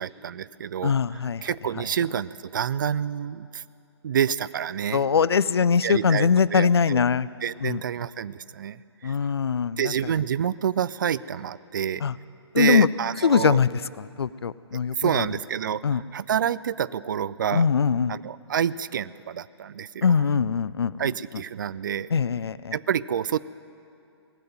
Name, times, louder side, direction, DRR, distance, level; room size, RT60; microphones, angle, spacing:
voice 1, 0.0-0.9 1.4-3.6 4.0-5.0 5.8-7.0 7.4-9.1 9.8-12.0 12.6-13.6 15.0-15.8 16.1-17.6 18.1-20.0 21.0-22.1 22.7-23.4, right 8 dB, 45° right, 18 dB, 0.4 m, -28 dB
voice 2, 0.8-1.8 4.9-7.3 7.6-7.8 9.0-10.1 12.0-12.2 12.5-12.9 13.2-15.4 15.8-16.0 17.5-18.2 20.0-21.4 22.1-22.8, left 6 dB, 65° left, 19 dB, 0.4 m, -23 dB
19.0 x 7.8 x 8.9 m, 2.6 s
figure-of-eight pair, 125°, 14 cm